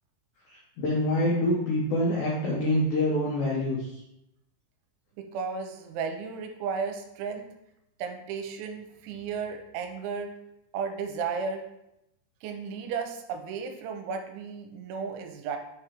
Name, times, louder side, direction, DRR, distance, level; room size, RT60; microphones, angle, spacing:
voice 1, 0.5-4.0, left 1 dB, 85° left, -4 dB, 2.0 m, -26 dB
voice 2, 5.2-7.5 8.0-10.3 10.7-11.6 12.4-15.6, right 5 dB, 85° right, 5 dB, 2.9 m, -34 dB
6.6 x 5.0 x 2.9 m, 0.84 s
omnidirectional pair, 5.4 m